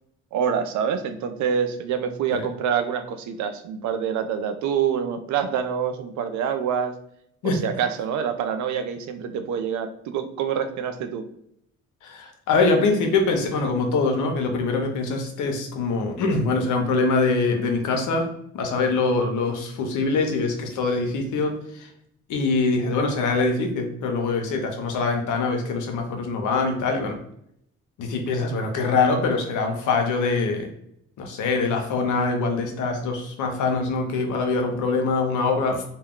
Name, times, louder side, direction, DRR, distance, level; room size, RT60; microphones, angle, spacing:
voice 1, 0.3-7.0 7.4-11.2, right 7 dB, 70° right, 8 dB, 0.4 m, -26 dB
voice 2, 12.0-18.3 18.5-21.9 22.3-27.2 28.0-30.7 31.2-35.8, left 3 dB, 80° left, 3 dB, 0.7 m, -24 dB
2.2 x 2.2 x 3.5 m, 0.72 s
cardioid pair, 90°, 30 cm